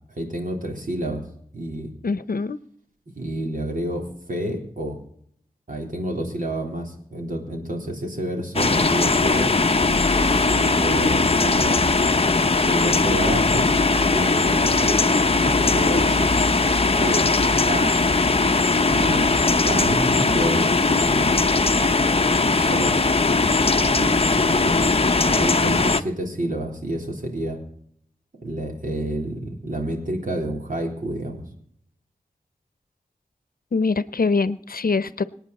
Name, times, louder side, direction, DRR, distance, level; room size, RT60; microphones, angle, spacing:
voice 1, 0.1-1.2 1.5-1.9 3.2-5.0 5.7-10.0 10.2-11.9 12.6-13.7 14.1-16.3 17.0-18.0 18.9-19.3 19.6-21.3 22.5-23.0 23.5-24.9 25.2-27.6 28.4-31.4, right 1 dB, 65° right, 1 dB, 3.8 m, -29 dB
voice 2, 2.0-2.6 33.7-35.2, left 4 dB, 80° left, 15 dB, 0.7 m, -23 dB
sound 1, 8.6-26.0, left 3 dB, 40° left, 0.7 m, -19 dB
26.0 x 9.3 x 4.2 m, 0.66 s
wide cardioid pair, 65°, 15 cm